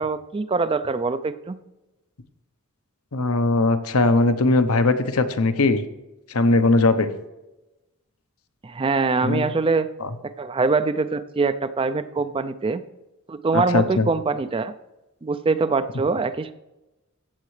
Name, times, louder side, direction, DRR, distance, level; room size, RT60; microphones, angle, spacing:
voice 1, 0.0-1.6 8.6-9.9 10.2-12.8 13.3-14.7 15.2-16.5, right 4 dB, 25° right, 12 dB, 0.4 m, -23 dB
voice 2, 3.1-5.8 6.3-7.1 9.2-9.5 10.0-10.1 13.5-14.1, left 2 dB, 75° left, 9 dB, 0.9 m, -20 dB
15.0 x 8.7 x 3.2 m, 1.0 s
head